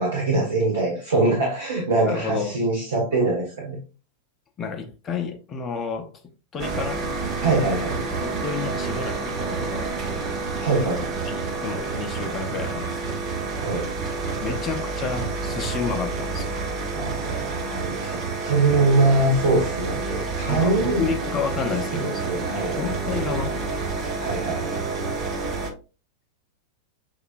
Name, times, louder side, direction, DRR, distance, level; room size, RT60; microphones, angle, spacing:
voice 1, 0.0-3.8 7.4-8.0 10.6-11.2 13.6-13.9 16.9-21.0 21.9-22.8 24.2-24.8, right 2 dB, 65° right, 1.2 m, -23 dB
voice 2, 2.0-2.6 4.6-6.1 6.5-7.0 8.2-10.4 11.3-13.2 14.4-16.6 20.5-23.6, left 5 dB, 25° left, 0.8 m, -31 dB
sound 1, 6.6-25.7, right 4 dB, 35° right, 0.8 m, -29 dB
6.4 x 2.9 x 2.5 m
figure-of-eight pair, 90°, 0 cm